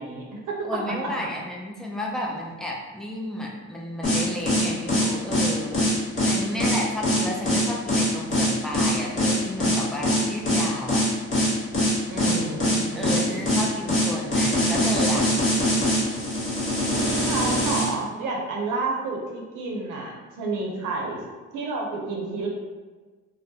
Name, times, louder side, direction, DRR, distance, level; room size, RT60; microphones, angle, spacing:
voice 1, 0.0-0.5 12.1-13.6 17.2-21.2 21.5-22.5, right 3 dB, 85° right, -1 dB, 0.6 m, -30 dB
voice 2, 0.6-11.0 12.9-15.3, left 1 dB, ahead, -3 dB, 0.4 m, -32 dB
sound 1, 4.0-17.9, equal, 45° left, 1.1 m, -22 dB
2.2 x 2.0 x 2.7 m, 1.4 s
cardioid pair, 90°, 30 cm